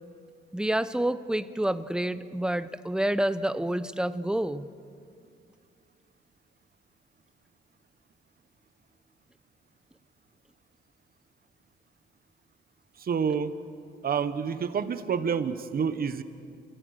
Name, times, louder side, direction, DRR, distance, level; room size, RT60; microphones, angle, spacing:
voice 1, 0.5-4.7, right 1 dB, 5° right, 14 dB, 0.7 m, -28 dB
voice 2, 13.0-13.5 14.0-16.2, right 6 dB, 50° right, 11 dB, 1.2 m, -28 dB
28.0 x 17.5 x 6.7 m, 2.4 s
cardioid pair, 90°, 20 cm